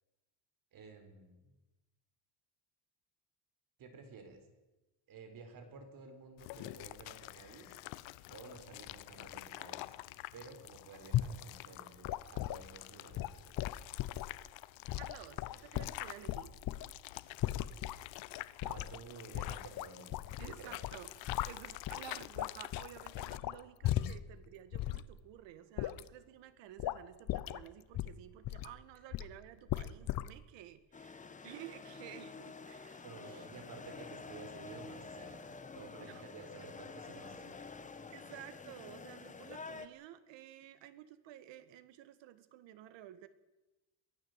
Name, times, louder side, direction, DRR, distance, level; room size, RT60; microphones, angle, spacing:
voice 1, 0.7-1.5 3.8-4.5 5.1-7.8 8.3-10.0 10.3-13.6 18.6-20.2 20.6-20.8 33.0-35.5 35.7-37.6, right 4 dB, 45° right, 7 dB, 4.2 m, -52 dB
sound 1, 6.4-23.4, left 18 dB, 75° left, 1.0 m, -48 dB
sound 2, 11.1-11.4 12.0-12.7 13.1-14.4 14.9-16.9 17.4-18.0 18.4-19.0 19.3-20.6 20.8-22.0 22.3-24.3 24.7-25.0 25.8-26.1 26.8-27.0 27.3-27.7 27.9-28.7 29.1-29.4 29.7-30.3, left 13 dB, 50° left, 0.8 m, -37 dB
voice 2, 15.0-16.6 20.4-33.5 36.0-36.2 38.1-43.3, right 12 dB, 70° right, 13 dB, 1.8 m, -53 dB
sound 3, 30.9-39.9, left 4 dB, 15° left, 1.2 m, -49 dB
23.5 x 15.5 x 8.0 m, 1.1 s
cardioid pair, 155°, 46 cm